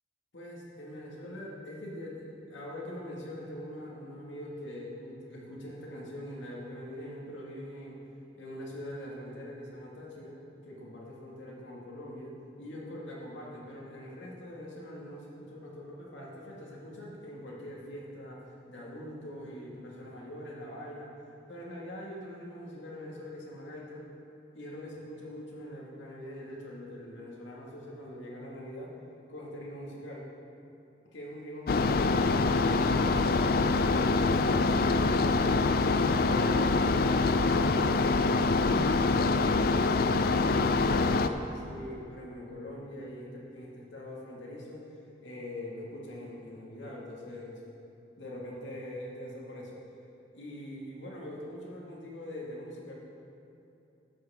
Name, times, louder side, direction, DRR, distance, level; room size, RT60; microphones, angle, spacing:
voice 1, 0.3-8.0 8.3-21.1 21.5-24.1 24.5-28.9 29.3-30.3 31.1-35.9 36.3-38.8 39.2-40.1 40.5-47.6 48.2-49.8 50.3-52.9, left 1 dB, 90° left, -3 dB, 1.9 m, -43 dB
sound 1, 31.7-41.3, left 3 dB, 50° left, 0.3 m, -25 dB
12.5 x 7.8 x 3.6 m, 2.8 s
head